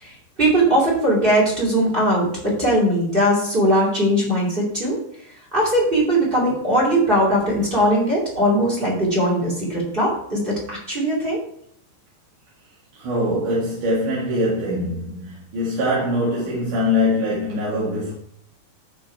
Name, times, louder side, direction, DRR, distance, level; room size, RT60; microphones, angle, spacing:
voice 1, 0.4-5.0 5.5-11.4, right 1 dB, 15° right, 2.0 m, -20 dB
voice 2, 12.9-18.1, left 1 dB, 55° right, 3.1 m, -23 dB
13.0 x 4.6 x 4.5 m
omnidirectional pair, 4.9 m